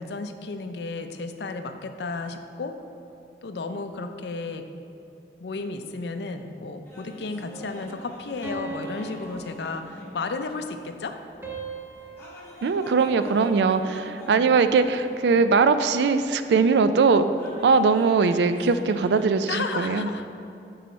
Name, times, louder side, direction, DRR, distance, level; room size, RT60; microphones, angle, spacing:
voice 1, 0.0-2.8 3.4-4.7 5.4-11.2 19.5-20.3, left 3 dB, 70° left, 7 dB, 0.4 m, -33 dB
sound 1, 6.8-19.2, equal, 15° left, 1.0 m, -45 dB
sound 2, 8.4-10.4 11.4-13.8, right 3 dB, 15° right, 0.8 m, -40 dB
voice 2, 12.6-17.3 17.6-20.1, right 4 dB, 70° right, 10 dB, 0.3 m, -21 dB
7.4 x 4.7 x 4.1 m, 2.7 s
head